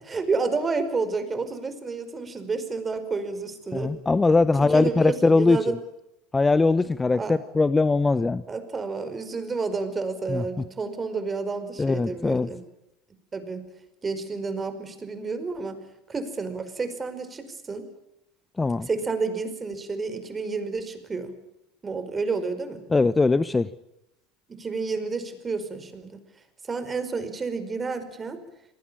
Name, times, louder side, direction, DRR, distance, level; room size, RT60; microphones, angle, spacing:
voice 1, 0.1-4.0 4.6-5.8 7.1-7.4 8.5-12.6 13.3-13.6 14.0-15.8 16.1-17.9 18.9-21.4 21.8-22.9 24.5-26.2 26.7-28.4, right 4 dB, 25° right, 10 dB, 5.1 m, -30 dB
voice 2, 3.7-5.7 6.3-8.4 10.3-10.4 11.8-12.5 18.6-18.9 22.9-23.7, left 3 dB, 15° left, 15 dB, 0.9 m, -21 dB
27.5 x 20.0 x 8.7 m, 0.85 s
hypercardioid pair, 85°, 0 cm